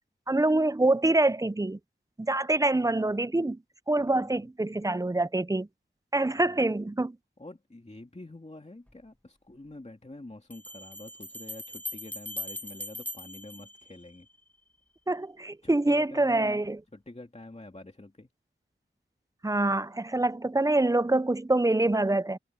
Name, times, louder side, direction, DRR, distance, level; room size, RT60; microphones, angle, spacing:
voice 1, 0.3-1.8 2.2-3.6 3.9-5.7 6.1-7.2 15.1-16.8 19.4-22.4, right 2 dB, 15° right, 0.5 m, -25 dB
voice 2, 4.0-4.5 6.3-6.7 7.4-14.3 15.6-16.6 16.9-18.3, left 2 dB, 30° left, 2.5 m, -47 dB
sound 1, 8.9-9.0 10.5-14.5, left 1 dB, 5° left, 1.0 m, -40 dB
wide cardioid pair, 55°, 21 cm